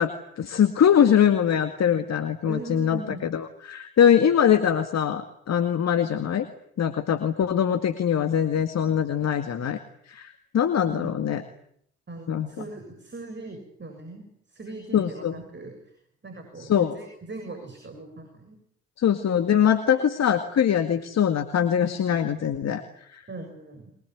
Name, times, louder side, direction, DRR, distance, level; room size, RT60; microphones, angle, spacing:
voice 1, 0.0-3.0 3.3-6.5 6.8-9.8 10.1-11.4 12.3-12.5 14.9-15.3 16.6-16.9 19.0-23.2, left 9 dB, 50° left, 8 dB, 2.0 m, -22 dB
voice 2, 2.4-3.2 10.9-11.1 12.1-16.0 16.2-18.6 19.9-20.0 23.3-23.9, right 2 dB, 35° right, 5 dB, 7.5 m, -40 dB
23.5 x 22.0 x 9.6 m, 0.69 s
hypercardioid pair, 50°, 33 cm